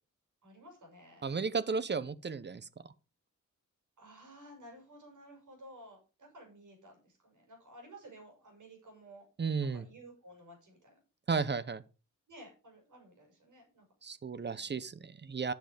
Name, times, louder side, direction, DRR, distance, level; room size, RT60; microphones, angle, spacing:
voice 1, 0.4-1.2 4.0-9.3 9.6-11.0 12.3-13.8 14.5-14.8, right 1 dB, 70° right, 6.4 m, -54 dB
voice 2, 1.2-2.7 9.4-9.8 11.3-11.8 14.0-15.5, right 5 dB, 35° right, 0.8 m, -34 dB
10.5 x 7.2 x 5.1 m
cardioid pair, 95°, 32 cm